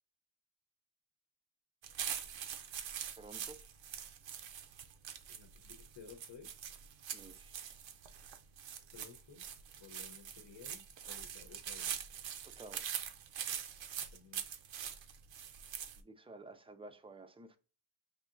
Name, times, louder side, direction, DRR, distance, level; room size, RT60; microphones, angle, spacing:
sound 1, 1.8-16.0, right 9 dB, 65° right, 0.6 m, -44 dB
voice 1, 3.2-3.6 7.1-7.5 12.4-12.9 16.0-17.6, right 2 dB, 10° right, 0.4 m, -52 dB
voice 2, 5.3-6.5 8.9-9.4 9.8-11.9 14.1-14.5, left 6 dB, 60° left, 0.9 m, -56 dB
6.3 x 2.8 x 2.6 m
wide cardioid pair, 95°, 49 cm